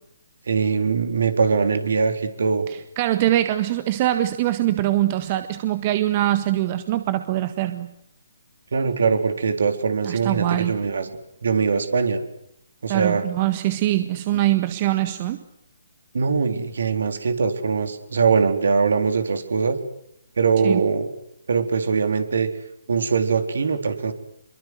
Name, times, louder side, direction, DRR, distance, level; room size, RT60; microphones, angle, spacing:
voice 1, 0.5-2.6 8.7-12.2 12.8-13.2 16.1-19.8 20.4-21.1 21.5-22.5 22.9-24.1, right 5 dB, 60° right, 7 dB, 4.0 m, -22 dB
voice 2, 3.0-7.9 10.0-10.8 12.9-15.4 20.6-20.8, right 14 dB, 35° right, 10 dB, 1.5 m, -23 dB
28.0 x 23.0 x 8.1 m, 0.77 s
figure-of-eight pair, 135°, 0 cm